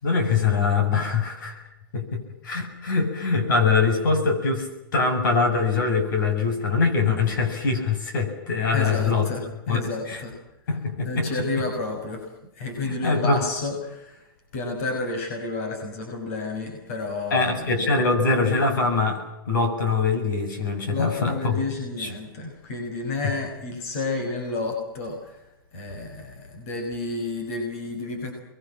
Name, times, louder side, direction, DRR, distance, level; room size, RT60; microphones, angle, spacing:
voice 1, 0.0-1.6 1.9-4.7 4.9-9.3 9.7-10.2 10.7-11.3 11.6-11.7 12.8-13.5 17.3-21.6 22.0-22.1 23.2-23.3, left 4 dB, 65° left, 5 dB, 7.5 m, -23 dB
voice 2, 8.7-10.3 11.0-12.2 12.6-14.2 14.5-17.6 20.9-25.2 25.7-28.3, left 3 dB, 40° left, 3 dB, 6.1 m, -30 dB
29.0 x 22.5 x 7.6 m, 0.89 s
supercardioid pair, 180°, 12 cm